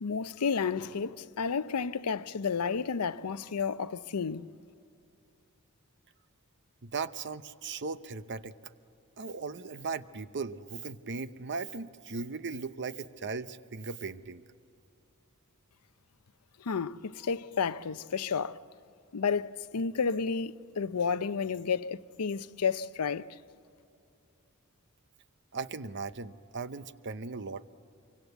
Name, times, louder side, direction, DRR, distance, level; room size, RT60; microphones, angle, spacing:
voice 1, 0.0-4.5 16.6-18.6 19.1-23.3, left 5 dB, 90° left, 0.6 m, -31 dB
voice 2, 6.8-8.5 9.2-14.4 25.5-27.7, right 4 dB, 55° right, 0.8 m, -38 dB
26.0 x 24.0 x 8.1 m
head